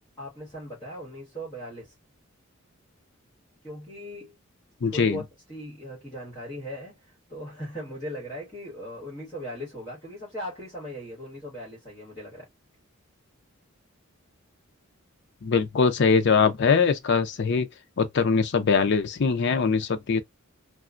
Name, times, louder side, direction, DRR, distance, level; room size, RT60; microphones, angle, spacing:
voice 1, 0.2-1.9 3.6-4.4 4.8-12.5, equal, 20° left, 1.4 m, -39 dB
voice 2, 4.8-5.2 15.4-17.7 18.0-20.2, left 5 dB, 55° left, 0.5 m, -22 dB
2.9 x 2.3 x 2.4 m
head